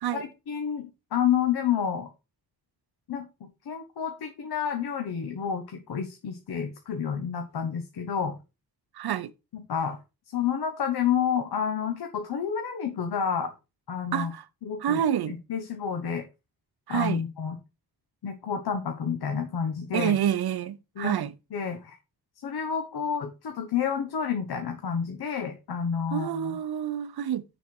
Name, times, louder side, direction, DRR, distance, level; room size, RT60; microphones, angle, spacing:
voice 1, 0.1-2.1 3.1-8.4 9.5-10.0 10.3-13.5 13.9-14.3 14.6-15.0 15.3-16.2 16.9-17.6 18.2-20.2 21.0-21.2 21.5-22.0 22.4-26.6, left 7 dB, 90° left, 1.3 m, -29 dB
voice 2, 8.9-9.3 14.1-14.4 14.8-15.4 16.9-17.2 19.9-21.3 26.1-27.4, right 10 dB, 80° right, 0.8 m, -28 dB
6.8 x 6.4 x 4.7 m
wide cardioid pair, 115°, 37 cm